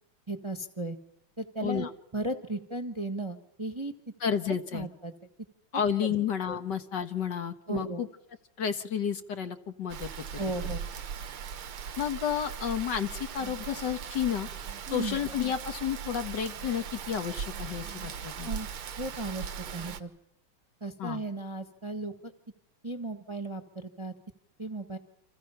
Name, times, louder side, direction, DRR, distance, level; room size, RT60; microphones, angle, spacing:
voice 1, 0.3-1.0 1.4-3.9 4.7-5.1 6.5-6.6 7.7-8.0 10.4-10.8 14.9-15.2 18.4-18.7 19.0-20.1 20.8-22.3 22.8-24.1 24.6-25.0, right 2 dB, 15° right, 7 dB, 1.2 m, -35 dB
voice 2, 4.2-4.9 5.7-8.1 8.6-10.1 12.0-14.5 14.9-18.5 21.0-21.2, left 8 dB, 60° left, 8 dB, 1.7 m, -31 dB
Rain, 9.9-20.0, right 7 dB, 85° right, 2.2 m, -39 dB
29.5 x 26.5 x 5.8 m, 0.78 s
omnidirectional pair, 2.3 m